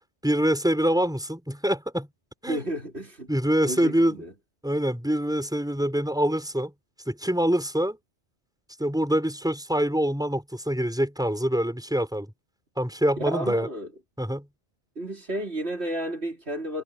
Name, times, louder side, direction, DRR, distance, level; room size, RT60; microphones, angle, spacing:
voice 1, 0.2-2.1 2.4-2.6 3.3-4.2 4.6-6.7 7.1-8.0 8.8-12.3 12.8-13.7 14.2-14.5, equal, 5° right, 5.5 m, -25 dB
voice 2, 2.5-3.3 3.6-4.3 13.2-13.9 15.0-16.8, right 1 dB, 60° right, 4.3 m, -32 dB
omnidirectional pair, 1.2 m